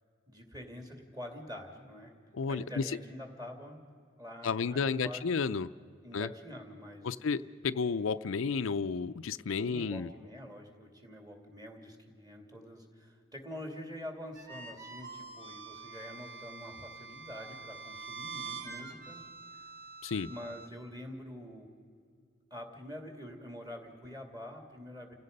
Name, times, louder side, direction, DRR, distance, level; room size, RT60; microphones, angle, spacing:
voice 1, 0.3-2.1 2.5-3.8 4.2-5.2 6.0-7.1 9.6-19.2 19.5-19.8 20.3-21.7 22.5-25.1, left 1 dB, 20° right, 3 dB, 2.6 m, -46 dB
voice 2, 2.3-2.8 4.4-5.7 6.1-6.3 7.0-10.1 20.0-20.3, left 5 dB, 75° left, 12 dB, 0.5 m, -32 dB
sound 1, 14.3-20.7, right 4 dB, 55° right, 3.5 m, -45 dB
30.0 x 16.5 x 5.3 m, 2.2 s
head